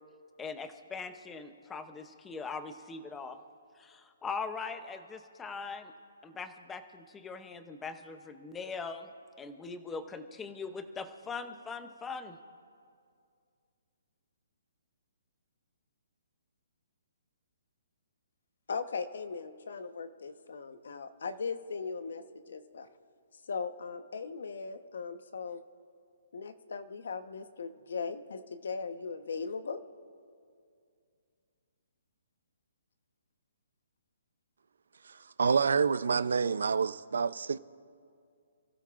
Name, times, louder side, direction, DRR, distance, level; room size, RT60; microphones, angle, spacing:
voice 1, 0.4-3.4 3.8-5.9 6.2-9.1 9.4-12.4, left 4 dB, 10° left, 0.7 m, -41 dB
voice 2, 18.7-22.9 23.5-25.6 26.3-29.8, left 5 dB, 70° left, 1.1 m, -38 dB
voice 3, 35.1-37.6, right 5 dB, 80° right, 0.5 m, -28 dB
29.0 x 16.0 x 2.5 m
hypercardioid pair, 165°, 0 cm